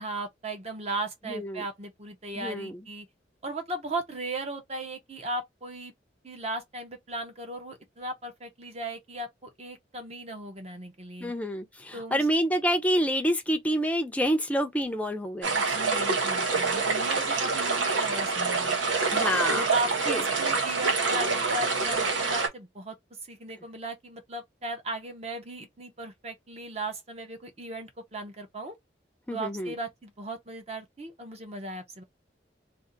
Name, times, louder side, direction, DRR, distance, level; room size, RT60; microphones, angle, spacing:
voice 1, 0.0-3.1 3.4-5.9 6.2-11.3 11.9-12.3 15.5-18.8 19.5-23.0 23.2-28.7 29.3-32.0, right 2 dB, 35° right, 0.8 m, -37 dB
voice 2, 1.3-1.6 2.3-2.8 11.2-15.5 19.1-19.6 20.1-20.2 29.3-29.7, equal, 10° left, 0.5 m, -27 dB
sound 1, 15.4-22.5, right 4 dB, 85° right, 1.1 m, -26 dB
2.6 x 2.5 x 3.8 m
head